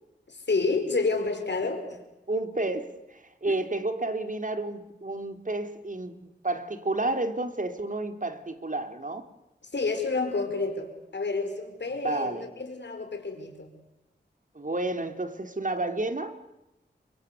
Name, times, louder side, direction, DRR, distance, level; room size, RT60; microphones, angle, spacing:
voice 1, 0.3-2.0 3.5-3.6 9.7-13.7, left 3 dB, 75° left, 5.4 m, -29 dB
voice 2, 2.3-6.1 6.4-9.3 11.9-12.4 14.5-16.3, right 2 dB, 45° right, 3.3 m, -31 dB
29.0 x 24.0 x 8.4 m
cardioid pair, 50°, 18 cm